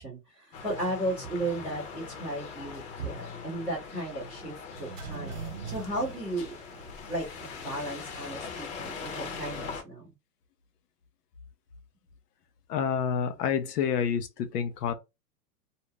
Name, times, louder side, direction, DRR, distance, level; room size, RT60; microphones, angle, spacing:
voice 1, 0.0-6.5 7.1-10.1, right 1 dB, 5° right, 0.4 m, -35 dB
sound 1, 0.5-9.8, left 5 dB, 50° left, 0.9 m, -41 dB
sound 2, 4.7-7.5 7.8-7.9, right 5 dB, 35° right, 0.8 m, -41 dB
voice 2, 12.7-14.9, left 7 dB, 75° left, 0.8 m, -28 dB
2.7 x 2.2 x 3.2 m
supercardioid pair, 165°, 47 cm